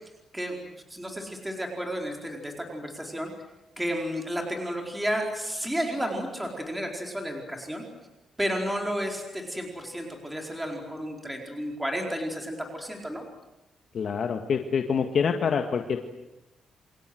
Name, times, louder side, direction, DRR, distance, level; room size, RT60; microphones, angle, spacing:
voice 1, 0.9-3.3 3.8-7.8 8.4-13.2, equal, 5° right, 1 dB, 4.6 m, -32 dB
voice 2, 13.9-16.0, left 6 dB, 55° left, 5 dB, 1.9 m, -26 dB
28.5 x 26.0 x 8.0 m, 0.95 s
cardioid pair, 125°, 0 cm